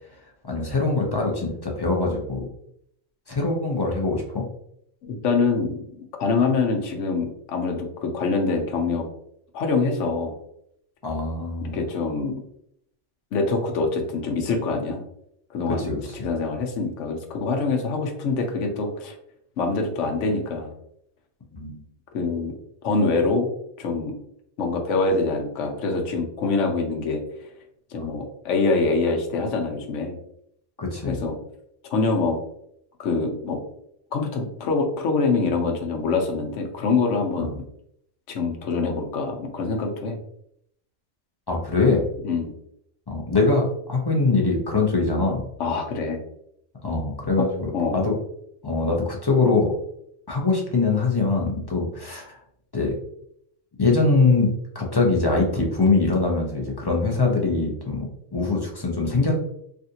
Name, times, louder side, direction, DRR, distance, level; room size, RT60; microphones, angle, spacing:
voice 1, 0.5-2.5 3.3-4.4 11.0-11.8 15.8-16.3 21.6-21.8 28.0-28.1 30.8-31.2 37.4-37.5 41.5-42.0 43.1-45.4 46.8-47.7 47.9-48.1 48.6-49.7 50.3-52.3 52.7-52.9 53.8-58.1 58.3-59.4, left 3 dB, 30° left, -1 dB, 0.4 m, -23 dB
voice 2, 5.0-9.1 9.5-10.3 11.6-12.4 13.3-15.0 15.5-19.1 19.6-20.7 22.1-22.5 22.8-23.5 23.8-24.1 24.6-27.2 27.9-30.2 31.1-31.4 31.9-32.4 33.0-33.6 34.1-37.6 38.3-40.2 42.2-42.5 45.6-46.2 47.4-47.5 47.7-48.0, left 4 dB, 80° left, 3 dB, 1.0 m, -25 dB
3.4 x 2.5 x 2.7 m, 0.72 s
omnidirectional pair, 1.2 m